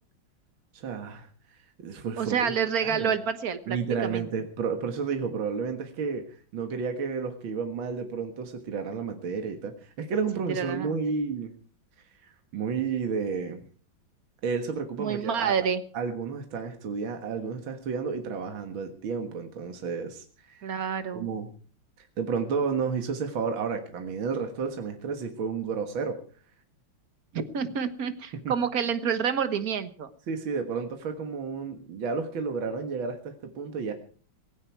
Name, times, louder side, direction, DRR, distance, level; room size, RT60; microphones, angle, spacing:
voice 1, 0.7-2.5 2.8-3.1 3.7-6.2 6.5-11.5 12.2-13.6 14.4-15.6 15.9-20.7 21.1-21.5 22.2-26.2 28.3-28.5 30.3-33.9, right 5 dB, 70° right, 5 dB, 2.4 m, -31 dB
voice 2, 2.2-4.3 10.5-11.0 15.0-15.8 20.6-21.3 27.3-30.1, right 7 dB, 50° right, 11 dB, 1.6 m, -28 dB
17.0 x 17.0 x 4.6 m, 0.42 s
omnidirectional pair, 2.2 m